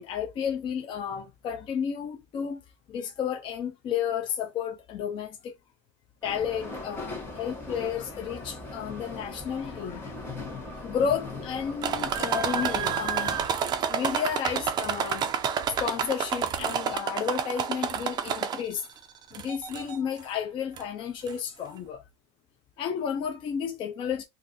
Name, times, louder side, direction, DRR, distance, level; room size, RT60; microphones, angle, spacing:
voice 1, 0.0-2.6 2.9-5.5 6.2-10.2 10.5-15.3 15.8-18.9 19.3-22.0 22.8-24.2, left 8 dB, 35° left, 0.5 m, -32 dB
sound 1, 6.2-13.5, left 2 dB, 15° left, 1.1 m, -39 dB
sound 2, 11.8-18.9 19.3-20.0 20.8-20.9 21.3-21.4, right 7 dB, 30° right, 0.4 m, -29 dB
2.5 x 2.5 x 3.8 m
cardioid pair, 155°, 15 cm